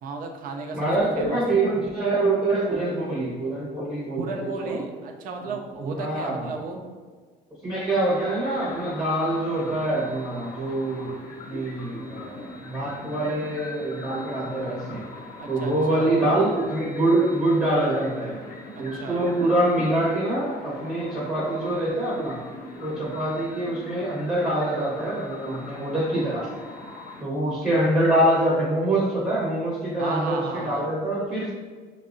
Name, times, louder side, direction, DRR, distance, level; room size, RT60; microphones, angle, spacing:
voice 1, 0.0-0.9 1.2-1.4 4.2-6.8 15.4-16.1 18.8-19.2 30.0-30.9, right 4 dB, 55° right, 3 dB, 0.4 m, -34 dB
voice 2, 0.7-4.8 5.8-6.5 7.6-15.1 15.5-18.4 18.8-22.4 22.8-26.5 27.2-31.5, right 1 dB, 10° right, -6 dB, 0.8 m, -25 dB
sound 1, 8.0-27.2, left 2 dB, 55° left, 0.7 m, -41 dB
5.2 x 2.0 x 2.5 m, 1.5 s
cardioid pair, 110°, 17 cm